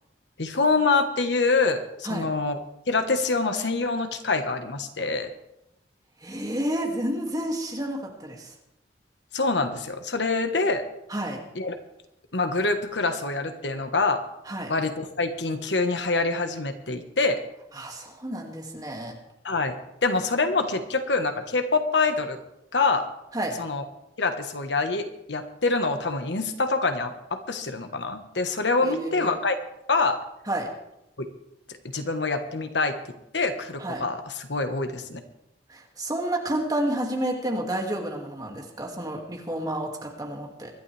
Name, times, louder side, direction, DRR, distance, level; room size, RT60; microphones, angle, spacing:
voice 1, 0.4-2.6 2.9-5.3 9.3-10.8 11.5-11.7 12.3-14.2 14.7-17.4 19.4-19.7 20.0-22.4 22.7-23.1 23.6-23.8 24.2-29.6 29.9-30.2 31.2-31.3 31.9-32.9 33.3-35.2, left 3 dB, 90° left, 7 dB, 1.4 m, -25 dB
voice 2, 6.2-8.5 11.1-11.4 14.5-14.7 17.7-19.1 23.3-23.5 28.8-29.4 30.5-30.7 33.8-34.0 35.7-40.7, right 1 dB, 20° right, 0 dB, 2.3 m, -30 dB
24.0 x 11.5 x 3.4 m, 0.85 s
head